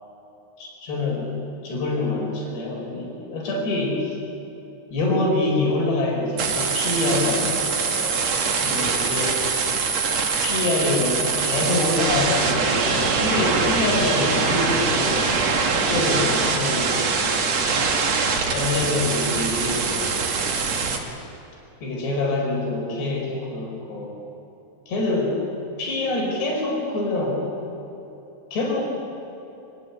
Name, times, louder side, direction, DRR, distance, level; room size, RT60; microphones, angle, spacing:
voice 1, 0.6-1.3 1.6-4.2 4.9-8.2 8.6-9.4 10.4-15.4 15.9-17.5 18.5-20.8 21.8-24.2 24.9-25.4 25.8-27.5 28.5-28.8, left 2 dB, 80° left, -2 dB, 7.2 m, -25 dB
sound 1, 6.4-21.0, right 5 dB, 45° right, 2.8 m, -23 dB
27.5 x 25.5 x 8.4 m, 3.0 s
omnidirectional pair, 4.8 m